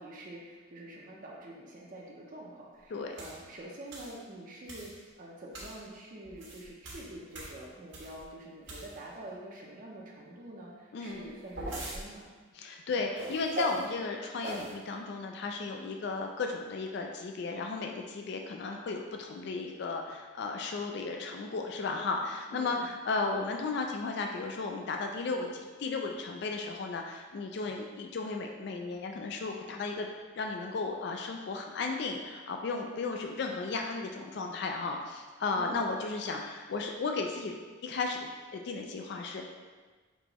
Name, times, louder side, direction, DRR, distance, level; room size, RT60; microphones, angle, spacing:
voice 1, 0.0-12.3 22.5-22.9 35.5-35.9, right 1 dB, 40° right, -2 dB, 0.6 m, -46 dB
sound 1, 3.2-3.4 3.9-4.2 4.7-5.0 5.5-5.8 6.3-8.2 8.6-9.2 11.1-12.0 13.2-13.9 14.4-14.7, right 1 dB, 70° right, 1.1 m, -40 dB
voice 2, 10.9-11.3 12.5-30.1 30.3-39.4, left 3 dB, 55° left, 2 dB, 0.3 m, -35 dB
5.3 x 3.0 x 2.9 m, 1.4 s
head